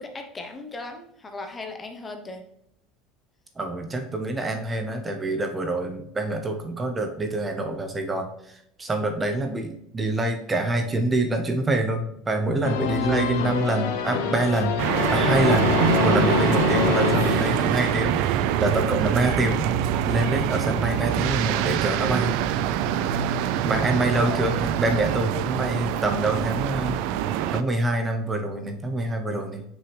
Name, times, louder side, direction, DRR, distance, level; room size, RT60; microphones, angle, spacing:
voice 1, 0.0-2.4 24.2-24.6, left 3 dB, 20° left, 5 dB, 0.9 m, -37 dB
voice 2, 3.6-14.7 15.1-15.7 16.0-19.7 20.1-22.4 23.6-27.0 27.5-29.6, right 2 dB, 15° right, 5 dB, 0.8 m, -26 dB
sound 1, 12.6-18.3, left 6 dB, 85° left, 0.7 m, -25 dB
sound 2, 14.8-27.6, right 10 dB, 70° right, 0.4 m, -24 dB
6.2 x 4.7 x 3.3 m, 0.76 s
supercardioid pair, 125°, 0 cm